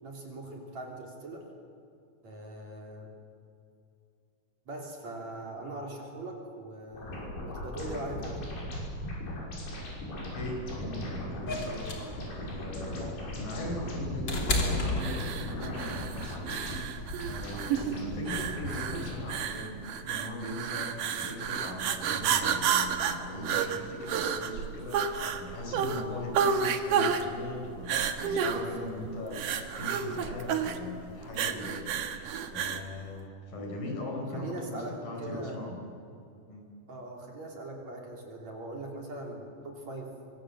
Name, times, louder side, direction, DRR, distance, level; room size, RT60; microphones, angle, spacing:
voice 1, 0.0-1.5 2.2-3.1 4.7-8.5 17.7-18.0 28.5-28.9 34.3-35.6 36.9-40.1, right 2 dB, 45° right, 0 dB, 4.2 m, -41 dB
sound 1, 6.9-19.3, left 1 dB, 90° left, 7.9 m, -38 dB
voice 2, 10.3-16.9 17.2-35.8 36.5-36.6, left 1 dB, 60° left, 1 dB, 6.3 m, -40 dB
sound 2, 11.5-15.7 17.0-17.1, left 2 dB, 30° left, 3.6 m, -32 dB
sound 3, 15.0-32.9, right 7 dB, 65° right, 2.7 m, -31 dB
25.0 x 24.5 x 7.7 m, 2.5 s
omnidirectional pair, 4.5 m